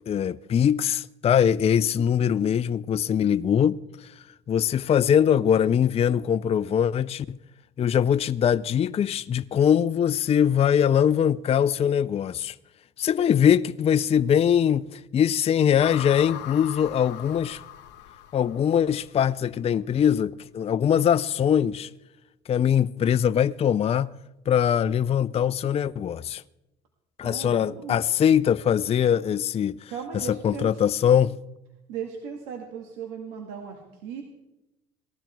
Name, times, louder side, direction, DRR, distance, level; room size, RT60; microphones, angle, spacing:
voice 1, 0.1-7.4 7.8-12.6 13.0-17.6 18.3-21.9 22.5-24.1 24.5-26.4 27.2-31.4, left 8 dB, 35° left, 0.5 m, -22 dB
sound 1, 15.8-19.1, left 12 dB, 70° left, 1.0 m, -39 dB
voice 2, 27.2-28.0 29.9-30.8 31.9-34.2, right 7 dB, 85° right, 2.2 m, -37 dB
18.0 x 13.0 x 4.6 m
supercardioid pair, 85°, 18 cm